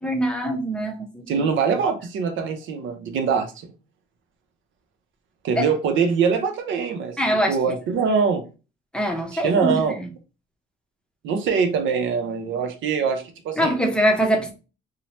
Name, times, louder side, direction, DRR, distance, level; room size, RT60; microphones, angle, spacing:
voice 1, 0.0-1.5 5.5-5.6 7.2-7.6 8.9-9.8 13.6-14.5, equal, 5° left, 0.6 m, -23 dB
voice 2, 1.3-3.5 5.4-7.2 7.5-8.4 9.3-10.0 11.2-13.7, right 6 dB, 75° right, 0.6 m, -23 dB
2.7 x 2.0 x 3.0 m
cardioid pair, 90°, 20 cm